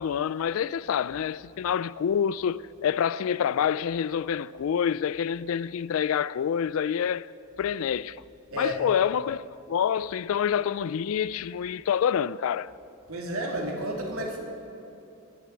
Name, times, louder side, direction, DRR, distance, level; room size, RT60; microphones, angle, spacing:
voice 1, 0.0-7.3 7.6-8.2 8.6-9.4 9.7-12.7, left 8 dB, 75° left, 0.3 m, -27 dB
voice 2, 13.1-14.4, right 1 dB, 90° right, 3.2 m, -31 dB
20.5 x 7.1 x 9.6 m
head